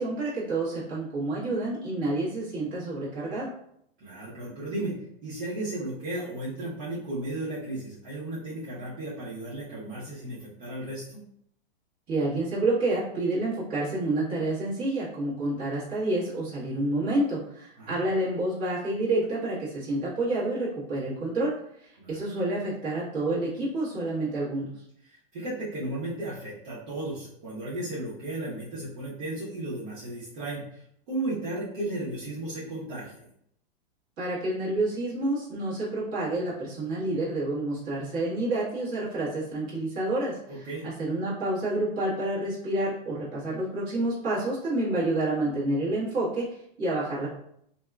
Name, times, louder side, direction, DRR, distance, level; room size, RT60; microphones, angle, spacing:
voice 1, 0.0-3.5 12.1-21.5 21.8-24.7 34.2-46.5 46.8-47.3, right 2 dB, 35° right, -9 dB, 1.4 m, -29 dB
voice 2, 4.0-4.9 5.2-11.2 17.8-18.0 22.0-22.3 25.0-33.2 40.5-40.9, right 2 dB, 55° right, -9 dB, 1.1 m, -35 dB
2.8 x 2.3 x 2.3 m, 0.72 s
supercardioid pair, 150°, 30 cm